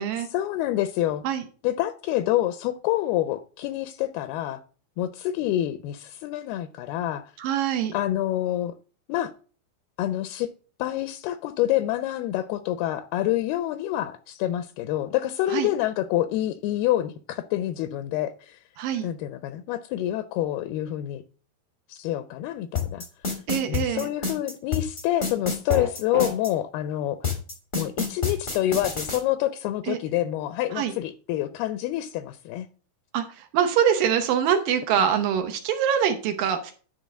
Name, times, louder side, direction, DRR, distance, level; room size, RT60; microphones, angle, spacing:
voice 1, 0.3-1.2 1.6-4.6 5.0-7.3 7.9-8.8 9.1-9.3 10.0-10.5 10.8-18.6 19.0-21.2 21.9-23.0 23.7-27.2 27.8-32.7 35.0-35.1, left 13 dB, 80° left, 2.4 m, -27 dB
voice 2, 7.4-8.0 15.5-15.7 18.8-19.1 23.5-24.1 29.9-30.0 30.8-30.9 33.1-33.2 33.5-36.7, right 8 dB, 75° right, 2.2 m, -24 dB
sound 1, 22.7-26.5 27.2-29.2, left 5 dB, 55° left, 0.5 m, -27 dB
sound 2, 25.7-26.3, right 1 dB, 50° right, 1.0 m, -30 dB
10.5 x 3.6 x 6.3 m
omnidirectional pair, 4.5 m